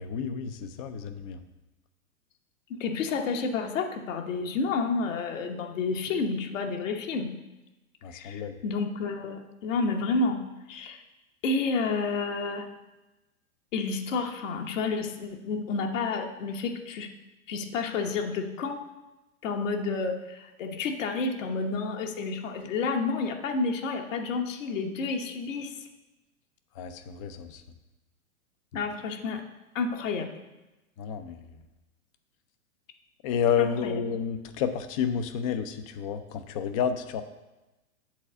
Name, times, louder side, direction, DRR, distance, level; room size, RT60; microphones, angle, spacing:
voice 1, 0.0-1.4 8.0-8.6 26.8-27.6 31.0-31.5 33.2-37.2, left 7 dB, 25° left, 10 dB, 0.4 m, -30 dB
voice 2, 2.7-7.4 8.1-11.0 11.4-12.7 13.7-17.1 17.5-18.8 19.4-25.9 28.7-29.4 29.7-30.3 33.6-34.0, left 4 dB, 60° left, 3 dB, 1.1 m, -30 dB
7.4 x 4.0 x 6.7 m, 1.0 s
hypercardioid pair, 115°, 44 cm